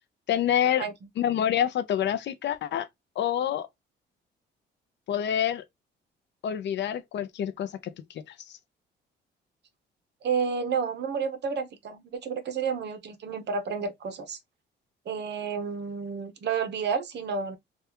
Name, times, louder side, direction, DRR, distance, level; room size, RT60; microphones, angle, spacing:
voice 1, 0.3-0.9 1.2-2.9 3.2-3.7 5.1-5.6 6.4-7.9 8.3-8.6, left 10 dB, 65° left, 0.6 m, -27 dB
voice 2, 10.2-14.4 15.1-17.6, right 6 dB, 60° right, 0.8 m, -30 dB
3.3 x 2.3 x 2.9 m
cardioid pair, 90°, 20 cm